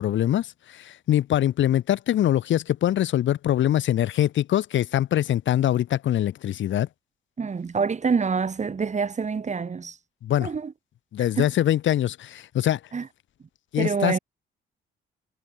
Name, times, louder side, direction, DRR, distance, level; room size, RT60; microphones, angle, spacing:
voice 1, 0.0-6.9 10.2-10.5 11.1-12.8 13.7-14.2, left 12 dB, 70° left, 1.9 m, -23 dB
voice 2, 7.4-10.0 10.4-10.7 11.4-11.5 12.9-13.1 13.8-14.2, right 5 dB, 35° right, 3.9 m, -26 dB
cardioid pair, 90°, 20 cm